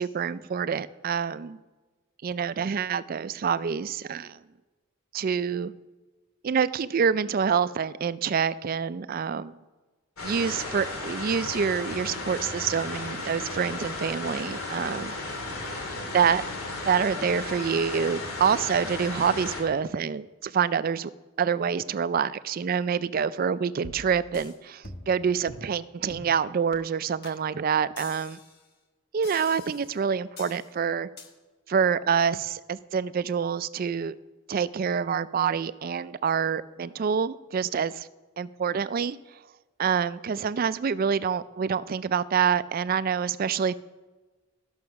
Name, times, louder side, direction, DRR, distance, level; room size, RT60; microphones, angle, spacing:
voice 1, 0.0-1.6 2.2-4.4 5.1-5.7 6.4-9.5 10.2-15.1 16.1-16.4 16.8-21.1 21.4-28.4 29.1-31.1 31.7-34.2 34.5-38.1 38.4-39.2 39.8-43.8, right 6 dB, 40° right, 16 dB, 0.3 m, -26 dB
sound 1, 10.2-19.6, left 2 dB, 85° left, 2.3 m, -35 dB
sound 2, 23.8-24.5 24.8-25.2 25.5-25.7 26.1-26.4 26.7-26.8 27.2-27.4 28.0-28.6 29.2-29.9 30.4-30.7 31.2-31.3, left 2 dB, 50° left, 1.2 m, -44 dB
13.0 x 6.3 x 5.8 m, 1.3 s
head